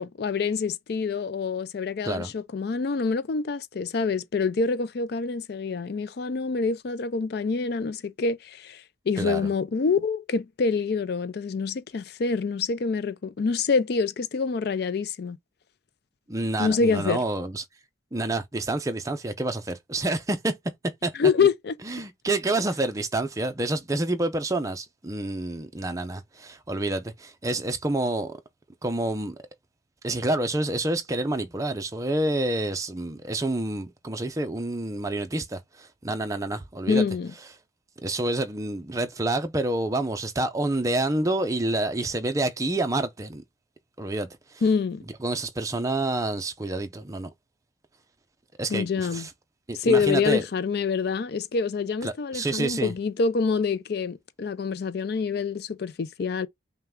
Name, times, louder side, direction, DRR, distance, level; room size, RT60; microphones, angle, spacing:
voice 1, 0.0-15.4 16.6-17.2 21.1-21.7 36.9-37.3 44.6-45.0 48.7-49.3 49.8-56.5, left 5 dB, 55° left, 0.4 m, -26 dB
voice 2, 9.2-9.5 16.3-17.6 18.1-20.5 20.8-21.1 21.8-28.4 28.8-29.4 30.0-37.1 38.0-43.4 44.0-44.6 45.2-47.3 48.6-49.3 49.7-50.4 52.0-52.9, right 2 dB, 15° right, 0.5 m, -28 dB
5.6 x 2.2 x 3.6 m
head